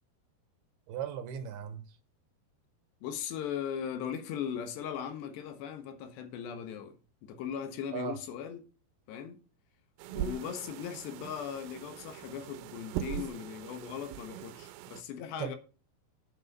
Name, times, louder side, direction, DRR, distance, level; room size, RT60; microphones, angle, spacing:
voice 1, 0.9-2.0 7.9-8.2 15.4-15.6, right 9 dB, 70° right, 2.8 m, -37 dB
voice 2, 3.0-7.0 7.2-8.6 9.1-9.4 10.1-15.6, left 8 dB, 80° left, 3.4 m, -38 dB
sound 1, 10.0-15.0, right 13 dB, 90° right, 3.0 m, -41 dB
8.7 x 7.6 x 5.4 m
omnidirectional pair, 5.0 m